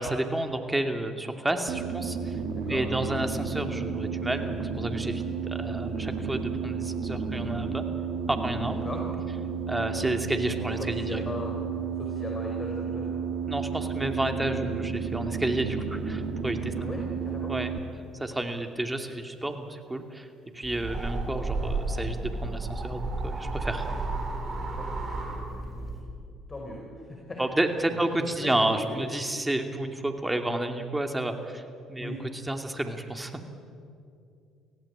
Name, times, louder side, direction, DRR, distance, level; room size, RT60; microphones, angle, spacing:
voice 1, 0.0-2.4 2.7-7.8 8.3-8.8 9.7-11.5 13.5-16.7 17.5-17.7 18.2-20.3 20.5-23.9 27.4-31.6 31.9-32.1 32.5-33.5, right 1 dB, 10° right, 5 dB, 2.7 m, -30 dB
sound 1, 1.7-17.8, right 5 dB, 65° right, 2.2 m, -32 dB
voice 2, 8.6-9.0 9.6-9.9 10.6-11.6 11.9-13.3 16.8-17.5 24.7-25.8 26.5-27.0 27.3-27.4 27.9-29.1 32.0-32.2, left 1 dB, 30° left, 0 dB, 5.0 m, -39 dB
sound 2, 20.6-26.0, right 2 dB, 40° right, 5.7 m, -32 dB
24.5 x 16.5 x 8.8 m, 2.4 s
hypercardioid pair, 65°, 0 cm